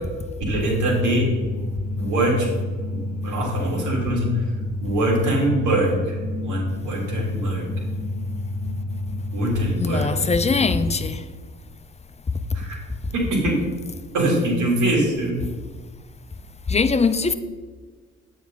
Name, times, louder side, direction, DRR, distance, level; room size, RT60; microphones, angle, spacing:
voice 1, 0.5-1.3 2.0-2.6 2.9-4.4 4.8-6.2 6.4-7.7 9.3-10.1 12.5-12.8 13.1-13.6 14.1-15.4, right 1 dB, 85° right, 3.5 m, -23 dB
sound 1, 0.6-10.8, left 2 dB, 50° right, 2.7 m, -29 dB
voice 2, 9.8-11.3 13.0-13.1 16.7-17.3, left 4 dB, 20° left, 0.7 m, -21 dB
9.4 x 9.2 x 4.0 m
cardioid pair, 90°, 30 cm